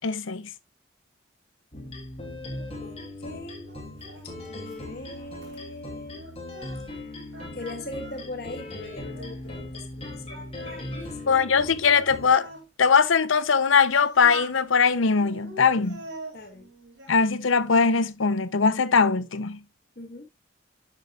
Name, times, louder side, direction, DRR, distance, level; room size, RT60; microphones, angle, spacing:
voice 1, 0.0-0.5 11.3-12.5 12.8-16.0 17.1-19.6, left 5 dB, 85° left, 0.7 m, -21 dB
sound 1, 1.7-12.3, left 2 dB, 30° left, 2.7 m, -39 dB
Singing, 2.5-7.0 7.3-9.7 10.0-12.7 13.3-14.6 15.2-17.2 17.5-18.1, right 1 dB, 65° right, 5.1 m, -45 dB
voice 2, 2.8-3.6 4.2-6.3 7.5-11.4 16.3-16.7 19.9-20.3, left 2 dB, 50° left, 1.5 m, -40 dB
10.5 x 7.6 x 2.4 m
head